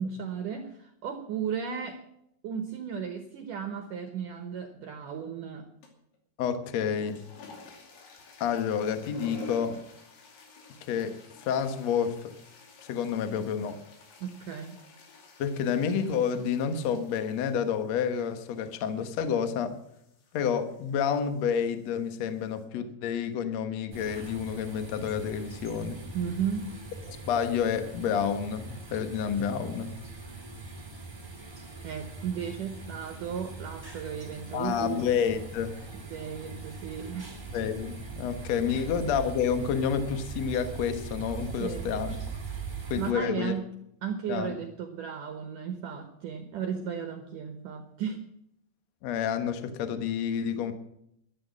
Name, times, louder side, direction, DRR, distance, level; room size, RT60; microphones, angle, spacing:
voice 1, 0.0-2.1 2.4-5.7 14.2-14.8 26.1-26.8 31.8-35.1 35.9-37.3 38.7-38.9 41.6-41.9 42.9-43.7 44.0-48.3, right 7 dB, 70° right, 6 dB, 2.0 m, -35 dB
sound 1, 5.8-6.2 6.8-22.7, left 4 dB, 65° left, 4.4 m, -51 dB
voice 2, 6.4-7.2 8.4-9.8 10.9-11.2 11.4-12.3 12.9-13.8 15.4-19.8 20.3-26.0 27.1-29.9 34.5-35.8 37.5-42.2 42.9-43.5 44.3-44.6 49.0-50.7, left 7 dB, 80° left, 9 dB, 1.5 m, -29 dB
sound 2, 23.9-43.1, right 4 dB, 15° right, 0.9 m, -41 dB
12.0 x 12.0 x 7.3 m, 0.76 s
omnidirectional pair, 5.2 m